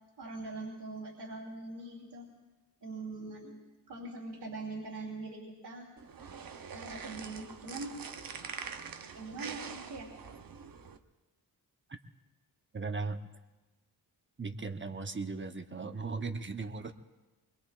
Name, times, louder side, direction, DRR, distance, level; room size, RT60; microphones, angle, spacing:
voice 1, 0.2-2.3 2.8-3.6 3.9-5.9 6.7-8.0 9.1-10.1, right 3 dB, 90° right, -6 dB, 2.8 m, -42 dB
sound 1, 6.0-11.0, right 6 dB, 55° right, 0.9 m, -44 dB
voice 2, 12.7-13.2 14.4-16.9, right 4 dB, 30° right, 7 dB, 0.9 m, -37 dB
24.5 x 22.0 x 2.5 m, 1.2 s
wide cardioid pair, 90°, 40 cm